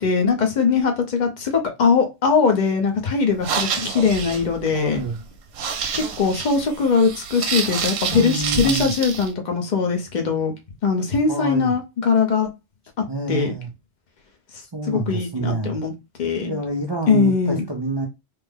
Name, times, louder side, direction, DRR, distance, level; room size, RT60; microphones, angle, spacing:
voice 1, 0.0-5.0 5.9-10.5 10.8-12.5 13.3-13.5 14.9-15.9 16.2-16.6 17.1-17.6, left 5 dB, 45° left, 0.8 m, -21 dB
sound 1, 3.3-9.3, right 6 dB, 75° right, 0.8 m, -28 dB
voice 2, 4.7-5.2 8.1-8.9 11.3-11.7 13.1-13.7 14.6-15.8 16.4-18.1, right 2 dB, 35° right, 0.4 m, -27 dB
3.3 x 2.1 x 3.5 m
omnidirectional pair, 1.1 m